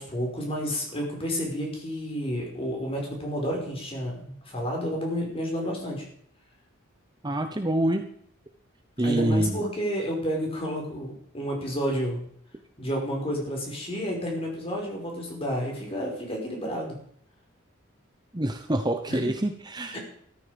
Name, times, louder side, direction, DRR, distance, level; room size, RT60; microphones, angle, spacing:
voice 1, 0.0-6.0 9.0-12.2 12.8-17.0 19.1-19.3 19.9-20.0, equal, 30° left, 0 dB, 5.6 m, -30 dB
voice 2, 7.2-8.1 9.0-9.6 18.3-20.0, right 1 dB, 20° right, 6 dB, 0.9 m, -26 dB
14.0 x 14.0 x 5.2 m, 0.63 s
head